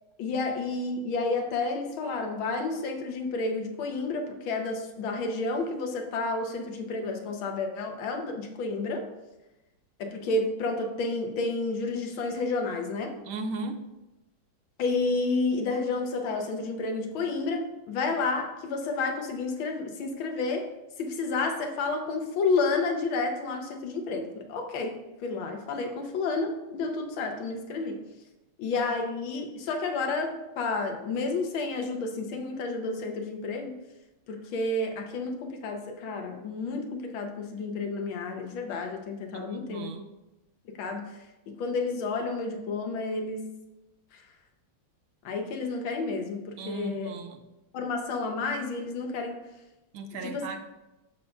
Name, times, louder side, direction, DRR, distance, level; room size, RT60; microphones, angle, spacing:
voice 1, 0.2-9.1 10.0-13.1 14.8-20.7 21.0-28.0 28.6-33.7 34.3-39.9 40.8-41.1 41.5-43.5 45.2-47.1 47.7-49.4 50.2-50.5, left 3 dB, 80° left, 4 dB, 1.7 m, -30 dB
voice 2, 13.2-13.8 39.3-40.1 46.6-47.4 49.9-50.6, right 3 dB, 80° right, 5 dB, 1.5 m, -36 dB
14.0 x 5.2 x 2.3 m, 1.0 s
omnidirectional pair, 2.2 m